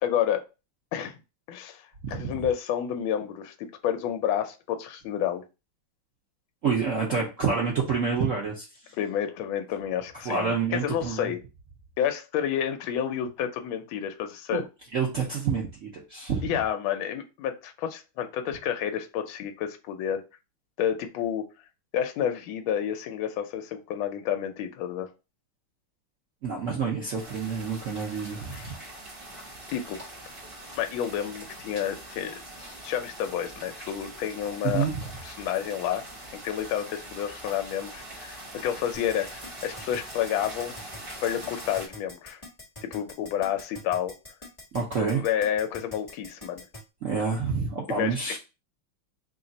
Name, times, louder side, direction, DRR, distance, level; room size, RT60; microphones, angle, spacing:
voice 1, 0.0-0.4 0.9-1.1 1.5-1.8 2.1-5.4 9.0-11.4 12.0-14.6 16.4-20.2 20.8-21.5 21.9-25.1 28.5-28.7 29.7-30.0 30.8-34.9 35.2-36.0 36.3-40.7 41.2-42.4 42.8-44.1 45.1-46.6 47.9-48.4, left 9 dB, 75° left, 6 dB, 1.4 m, -30 dB
voice 2, 2.0-2.5 6.6-8.7 10.2-11.3 14.5-14.6 14.9-16.6 26.4-28.7 34.6-35.0 44.7-45.2 47.0-48.4, right 5 dB, 65° right, -2 dB, 0.7 m, -28 dB
sound 1, 27.2-41.9, right 1 dB, 35° right, 1.0 m, -43 dB
Keyboard (musical), 38.9-46.8, left 1 dB, 20° left, 1.0 m, -44 dB
3.5 x 2.4 x 3.9 m, 0.28 s
omnidirectional pair, 2.4 m